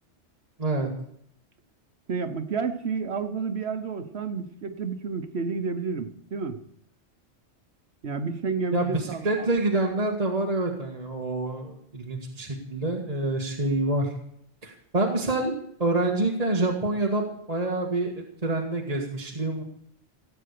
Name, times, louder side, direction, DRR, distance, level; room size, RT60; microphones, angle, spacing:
voice 1, 0.6-0.9 8.7-14.1 14.6-15.5 15.8-19.6, right 2 dB, 35° right, 0 dB, 1.9 m, -27 dB
voice 2, 2.1-6.6 8.0-9.5, right 5 dB, 70° right, 9 dB, 1.3 m, -30 dB
17.0 x 9.0 x 6.7 m, 0.70 s
omnidirectional pair, 1.1 m